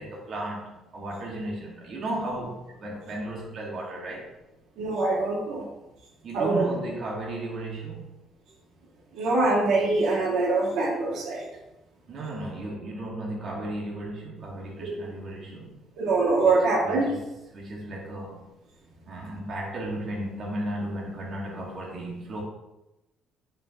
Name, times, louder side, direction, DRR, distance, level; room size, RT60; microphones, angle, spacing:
voice 1, 0.0-4.3 6.2-8.1 12.1-15.7 16.4-16.5 16.8-17.2 17.5-18.4 19.1-22.4, right 1 dB, 45° right, -3 dB, 1.7 m, -34 dB
voice 2, 4.8-5.7 6.3-6.7 9.2-11.4 14.8-14.9 16.0-17.1, right 3 dB, 75° right, -2 dB, 2.0 m, -24 dB
10.0 x 5.6 x 2.9 m, 0.96 s
cardioid pair, 150°, 0 cm